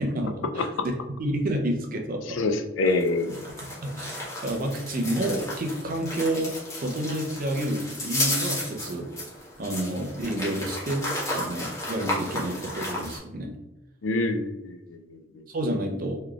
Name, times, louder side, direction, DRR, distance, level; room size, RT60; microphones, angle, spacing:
voice 1, 0.0-2.4 2.8-9.1 9.6-13.5 15.5-16.2, right 1 dB, 50° right, 3 dB, 0.6 m, -30 dB
voice 2, 2.3-3.4 14.0-15.4, left 2 dB, 90° left, 7 dB, 0.4 m, -26 dB
sound 1, 2.9-13.2, left 1 dB, 20° left, 1.2 m, -33 dB
3.8 x 3.2 x 2.3 m, 0.97 s
head